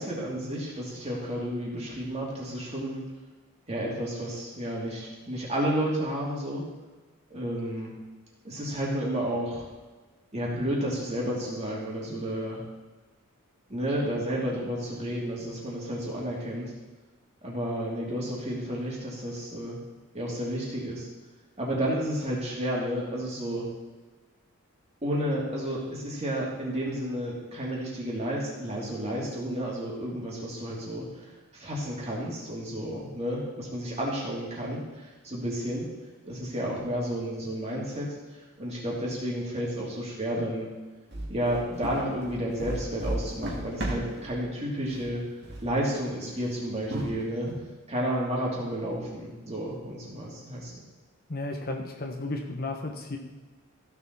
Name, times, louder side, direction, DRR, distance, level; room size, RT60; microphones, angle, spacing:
voice 1, 0.0-3.0 3.7-6.6 7.3-7.9 8.4-9.6 10.3-12.6 13.7-16.7 17.4-19.8 20.1-21.1 21.6-23.7 25.0-35.9 36.2-40.7 41.3-45.2 45.6-47.5 47.9-50.7, equal, 30° right, -4 dB, 2.9 m, -31 dB
sound 1, 41.1-44.3 44.8-45.2 45.4-45.7 46.2-46.3 46.9-47.5, right 1 dB, 50° right, 2.3 m, -33 dB
voice 2, 51.3-53.2, left 2 dB, 40° left, 3 dB, 1.0 m, -33 dB
15.0 x 7.0 x 4.1 m, 1.3 s
head